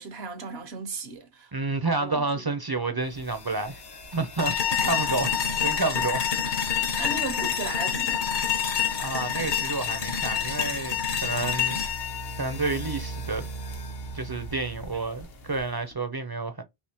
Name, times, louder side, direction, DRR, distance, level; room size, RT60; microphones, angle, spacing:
voice 1, 0.0-1.5 1.9-2.5 7.0-8.3 14.9-15.0, right 3 dB, 85° right, 1.1 m, -36 dB
voice 2, 1.5-3.8 4.1-5.3 5.6-6.3 6.6-6.8 9.0-11.8 12.4-13.5 14.1-16.6, right 3 dB, 35° right, 0.4 m, -30 dB
sound 1, 3.1-15.9, right 1 dB, 75° left, 1.0 m, -42 dB
sound 2, 4.4-13.4, left 8 dB, 55° left, 0.8 m, -27 dB
3.5 x 2.8 x 2.8 m
omnidirectional pair, 1.0 m